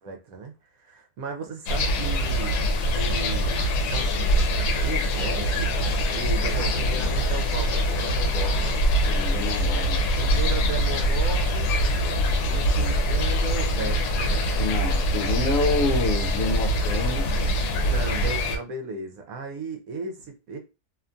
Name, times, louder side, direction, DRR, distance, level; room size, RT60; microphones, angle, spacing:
voice 1, 0.0-2.5 2.9-4.5 4.8-8.8 10.2-11.7 12.4-14.5 17.8-20.6, right 3 dB, 70° right, 0.9 m, -35 dB
sound 1, 1.7-18.6, equal, 90° left, 1.1 m, -24 dB
voice 2, 9.0-10.0 14.6-17.3, left 3 dB, 70° left, 0.9 m, -28 dB
2.8 x 2.2 x 2.5 m
omnidirectional pair, 1.7 m